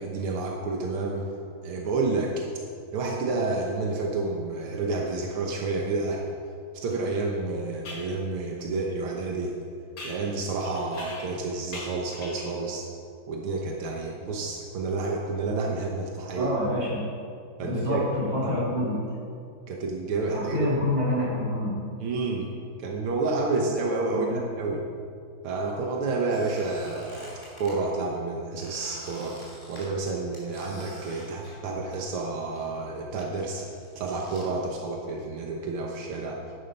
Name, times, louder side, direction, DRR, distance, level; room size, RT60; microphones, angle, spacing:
voice 1, 0.0-1.3 1.6-2.3 2.9-6.2 6.8-9.5 10.0-12.9 13.3-16.5 17.6-18.0 19.7-20.7 22.0-22.5 22.8-24.8 25.4-27.3 27.6-29.4 29.7-33.7 34.0-36.4, right 3 dB, 85° right, -1 dB, 2.0 m, -29 dB
sound 1, 6.9-7.0 7.8-8.1 10.0-11.4 11.7-12.6, left 2 dB, 80° left, 3.1 m, -42 dB
voice 2, 16.3-17.1 17.6-19.0 20.3-21.8 24.1-24.4, left 1 dB, 40° right, -7 dB, 4.1 m, -28 dB
Squeak, 26.3-27.8 28.6-32.3 32.5-34.5, equal, 10° left, 3.0 m, -48 dB
11.0 x 10.0 x 5.5 m, 2.4 s
omnidirectional pair, 2.3 m